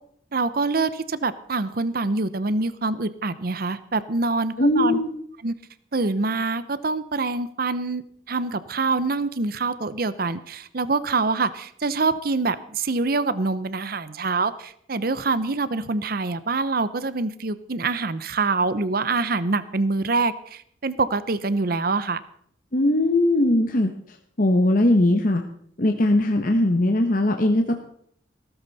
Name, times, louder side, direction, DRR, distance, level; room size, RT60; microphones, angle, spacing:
voice 1, 0.3-5.0 5.4-5.5 5.9-22.2, right 3 dB, 55° right, 15 dB, 0.8 m, -25 dB
voice 2, 4.6-5.1 22.7-23.9 24.4-25.4 25.8-27.8, left 1 dB, 45° left, 4 dB, 1.1 m, -20 dB
16.5 x 14.0 x 4.1 m, 0.65 s
head